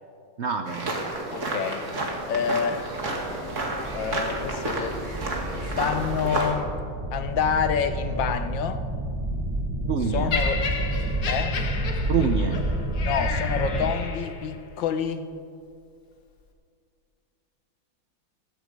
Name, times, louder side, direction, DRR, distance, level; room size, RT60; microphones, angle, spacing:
voice 1, 0.4-0.9 9.8-10.3 12.1-12.6, right 6 dB, 85° right, 8 dB, 0.6 m, -26 dB
sound 1, 0.7-6.5, right 2 dB, 40° right, 2.3 m, -31 dB
voice 2, 1.3-1.8 2.3-3.0 3.9-5.0 5.5-6.7 7.1-8.8 10.1-10.7 11.3-11.6 13.0-15.3, left 7 dB, 75° left, 9 dB, 1.6 m, -27 dB
sound 2, 2.7-13.9, right 1 dB, 15° right, 4.1 m, -30 dB
Laughter, 10.3-14.5 15.3-15.5, left 5 dB, 55° left, 1.8 m, -32 dB
15.5 x 14.5 x 5.2 m, 2.3 s
omnidirectional pair, 2.1 m